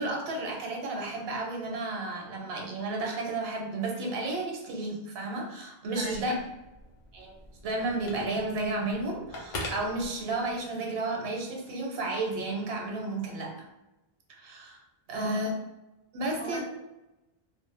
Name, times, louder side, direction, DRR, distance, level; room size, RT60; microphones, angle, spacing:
voice 1, 0.0-6.3 7.1-7.3 7.6-13.5 14.3-14.8 15.1-15.5 16.1-16.6, right 2 dB, 75° right, 0 dB, 0.8 m, -32 dB
Telephone, 6.0-10.7, left 1 dB, 55° left, 0.6 m, -43 dB
voice 2, 6.0-6.4 15.1-15.4 16.4-16.6, right 1 dB, 10° left, -6 dB, 0.5 m, -39 dB
2.0 x 2.0 x 3.1 m, 0.98 s
omnidirectional pair, 1.0 m